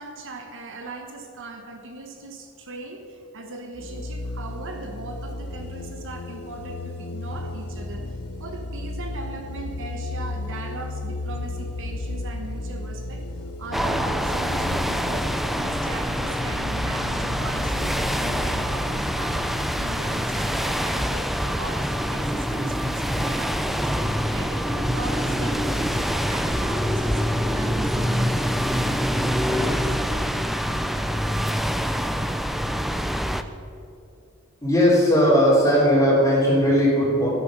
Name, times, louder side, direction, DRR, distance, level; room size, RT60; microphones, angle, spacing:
voice 1, 0.0-28.5 29.5-30.0, right 2 dB, 60° right, 4 dB, 1.1 m, -39 dB
sound 1, 3.7-21.2, left 2 dB, 80° left, 0.9 m, -34 dB
sound 2, 13.7-33.4, equal, ahead, 0.5 m, -25 dB
voice 2, 34.6-37.3, equal, 15° left, -10 dB, 2.9 m, -18 dB
12.5 x 9.4 x 6.2 m, 2.7 s
head